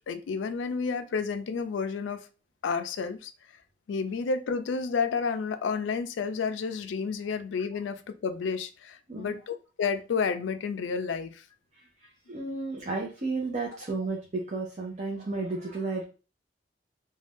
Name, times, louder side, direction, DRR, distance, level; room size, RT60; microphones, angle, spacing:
voice 1, 0.0-2.3 2.6-3.3 3.9-11.4, left 5 dB, 80° left, 0.4 m, -31 dB
voice 2, 11.8-16.0, right 3 dB, 40° right, 0.5 m, -33 dB
2.5 x 2.2 x 3.4 m
head